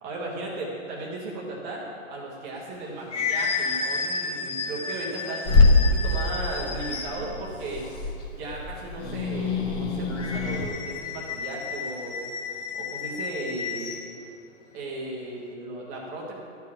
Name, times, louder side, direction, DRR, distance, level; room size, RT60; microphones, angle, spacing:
voice 1, 0.0-7.9 8.4-12.2 12.7-14.0 14.7-16.3, right 2 dB, 5° right, -4 dB, 0.4 m, -36 dB
sound 1, 2.6-7.4 10.1-14.1, left 5 dB, 60° left, 1.5 m, -32 dB
Growling / Hiss, 5.4-10.7, left 3 dB, 30° left, 1.2 m, -24 dB
12.0 x 4.7 x 8.3 m, 2.5 s
hypercardioid pair, 155°, 39 cm